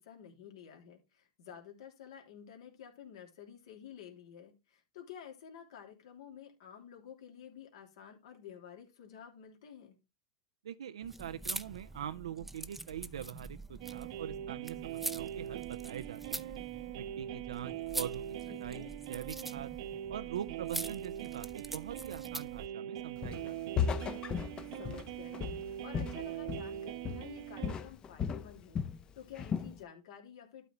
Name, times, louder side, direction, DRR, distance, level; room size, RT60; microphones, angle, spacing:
voice 1, 0.0-10.0 18.5-19.0 24.7-28.8 29.1-30.7, left 8 dB, 70° left, 2.9 m, -51 dB
voice 2, 10.6-16.5 17.0-18.2 18.6-19.7 20.1-23.9, right 10 dB, 85° right, 0.5 m, -43 dB
sound 1, 11.0-22.7, right 2 dB, 5° right, 0.6 m, -44 dB
sound 2, 13.8-27.7, right 12 dB, 65° right, 0.9 m, -42 dB
Walk footsteps, 23.2-23.5 23.8-26.8 27.0-27.4 27.6-29.0 29.4-29.7, left 7 dB, 30° left, 0.8 m, -35 dB
12.0 x 4.1 x 4.4 m
hypercardioid pair, 105°, 3 cm